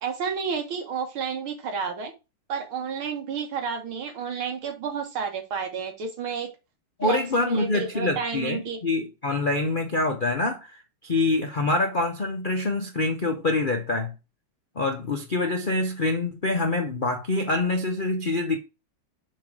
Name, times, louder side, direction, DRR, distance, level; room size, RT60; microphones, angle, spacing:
voice 1, 0.0-2.1 2.5-6.5 7.0-8.8, right 6 dB, 70° right, 2.3 m, -31 dB
voice 2, 7.0-14.1 14.8-18.6, left 2 dB, 55° left, 0.5 m, -25 dB
7.0 x 3.9 x 6.1 m
omnidirectional pair, 2.4 m